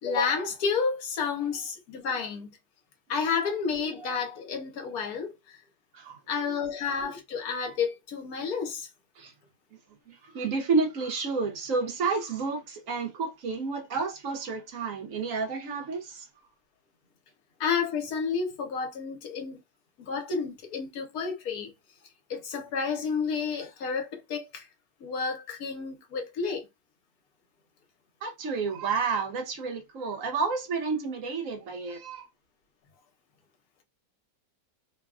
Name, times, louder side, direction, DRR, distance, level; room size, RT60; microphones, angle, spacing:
voice 1, 0.0-2.6 3.1-5.6 6.3-8.9 17.6-19.6 20.0-21.7 22.3-24.7 25.0-26.7, left 5 dB, 60° left, 1.2 m, -30 dB
voice 2, 10.1-16.3 28.2-32.3, right 4 dB, 60° right, 1.1 m, -30 dB
3.1 x 2.3 x 2.3 m
omnidirectional pair, 1.9 m